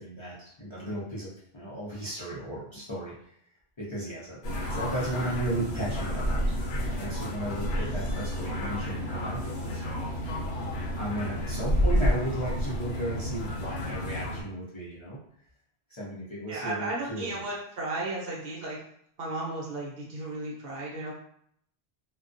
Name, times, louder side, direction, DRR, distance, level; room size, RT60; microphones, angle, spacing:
voice 1, 0.0-3.1 3.8-6.4 6.8-9.8 11.0-15.2 15.9-17.4, right 1 dB, 35° left, -9 dB, 0.5 m, -35 dB
sound 1, 4.4-14.4, equal, 70° left, 0.9 m, -30 dB
voice 2, 16.5-18.8 19.2-21.1, right 2 dB, 65° right, -4 dB, 0.9 m, -34 dB
2.3 x 2.1 x 2.5 m, 0.67 s
omnidirectional pair, 1.1 m